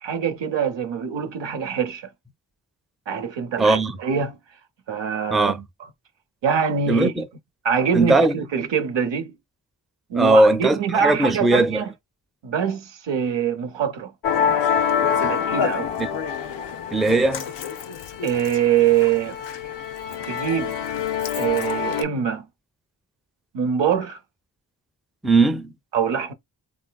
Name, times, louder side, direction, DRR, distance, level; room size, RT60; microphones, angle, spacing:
voice 1, 0.0-2.1 3.1-4.4 4.9-5.5 6.4-7.1 7.6-9.3 10.1-11.9 12.4-14.1 15.1-15.9 18.2-19.4 20.3-20.8 21.4-22.5 23.5-24.2 25.9-26.3, right 7 dB, 85° right, 0.7 m, -24 dB
voice 2, 3.6-4.0 5.3-5.6 6.9-7.3 7.9-8.3 10.1-11.9 16.0-16.2 16.9-17.5 25.2-25.7, right 2 dB, ahead, 0.4 m, -19 dB
Musical instrument, 14.2-22.0, left 7 dB, 80° left, 0.6 m, -26 dB
3.2 x 2.6 x 2.2 m
cardioid pair, 60°, 42 cm